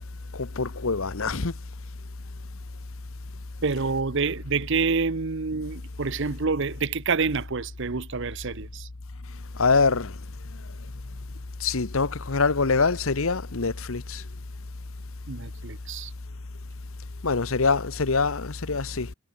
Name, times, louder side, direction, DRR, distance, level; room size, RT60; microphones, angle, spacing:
voice 1, 0.3-1.5 9.5-10.2 11.6-14.2 17.2-19.1, left 4 dB, 70° left, 1.1 m, -24 dB
voice 2, 3.6-8.8 15.3-16.1, right 4 dB, 55° right, 0.8 m, -27 dB
head